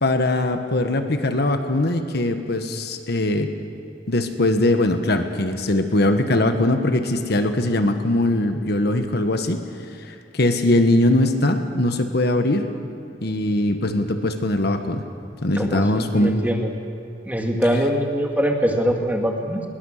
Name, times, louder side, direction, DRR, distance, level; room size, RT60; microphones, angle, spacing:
voice 1, 0.0-3.5 4.1-9.6 10.1-12.6 13.2-15.0 15.4-16.5, left 1 dB, 65° left, 7 dB, 1.4 m, -21 dB
voice 2, 15.6-16.7 17.3-19.6, equal, 10° right, 2 dB, 1.9 m, -22 dB
20.5 x 19.5 x 6.5 m, 2.7 s
head